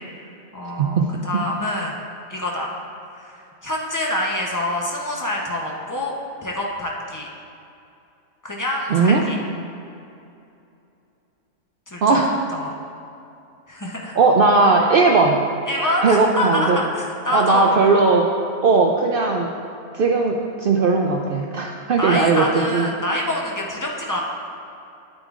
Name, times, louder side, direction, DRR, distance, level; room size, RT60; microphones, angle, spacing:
voice 1, 0.1-1.0 1.2-2.0 2.3-2.7 3.1-6.1 6.4-7.3 8.4-9.4 11.9-12.2 12.6-12.7 13.7-14.2 15.7-17.7 22.0-24.2, left 1 dB, 20° left, -2 dB, 0.5 m, -26 dB
voice 2, 0.8-1.2 8.9-9.2 12.0-12.3 14.2-15.4 16.0-16.8 17.3-18.3 18.6-19.5 19.9-22.4 22.7-22.9, right 4 dB, 85° right, 1 dB, 0.4 m, -17 dB
9.1 x 8.8 x 2.4 m, 2.7 s
omnidirectional pair, 1.5 m